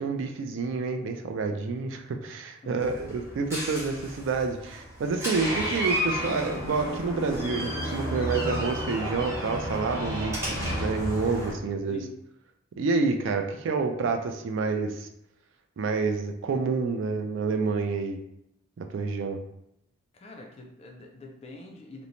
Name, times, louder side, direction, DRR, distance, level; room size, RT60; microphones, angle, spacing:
voice 1, 0.0-10.5 10.8-12.1 12.8-15.1 15.8-18.2 18.8-19.4, right 4 dB, 60° right, 5 dB, 0.3 m, -28 dB
Door, 2.8-11.5, equal, 15° right, 0.7 m, -32 dB
voice 2, 20.1-22.0, left 2 dB, 30° left, 0 dB, 0.3 m, -45 dB
2.5 x 2.1 x 2.9 m, 0.78 s
head